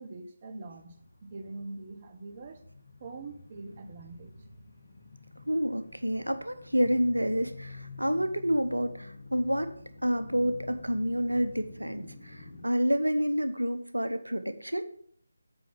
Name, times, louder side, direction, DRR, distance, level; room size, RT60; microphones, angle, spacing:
voice 1, 0.0-2.6 3.0-4.3, right 3 dB, 35° right, 6 dB, 1.0 m, -43 dB
sound 1, 0.8-12.6, left 3 dB, 60° left, 3.2 m, -48 dB
voice 2, 5.5-9.7 10.0-14.8, equal, 85° right, 10 dB, 0.9 m, -29 dB
8.1 x 5.3 x 7.2 m, 0.64 s
figure-of-eight pair, 155°, 0 cm